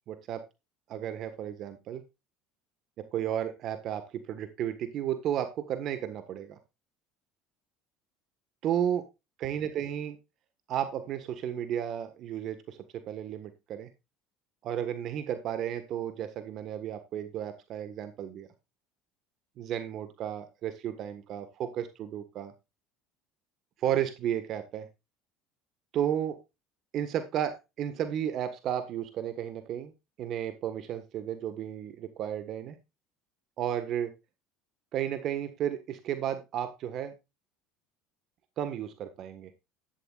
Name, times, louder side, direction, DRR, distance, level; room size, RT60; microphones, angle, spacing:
voice 1, 0.1-0.4 0.9-2.0 3.0-6.6 8.6-9.1 9.4-10.2 10.7-13.9 14.6-18.5 19.6-22.5 23.8-24.9 25.9-26.4 26.9-29.9 30.2-32.8 33.6-34.1 34.9-37.1 38.6-39.5, right 10 dB, 55° right, 10 dB, 1.5 m, -33 dB
12.5 x 10.5 x 2.4 m, 0.25 s
supercardioid pair, 95°, 0 cm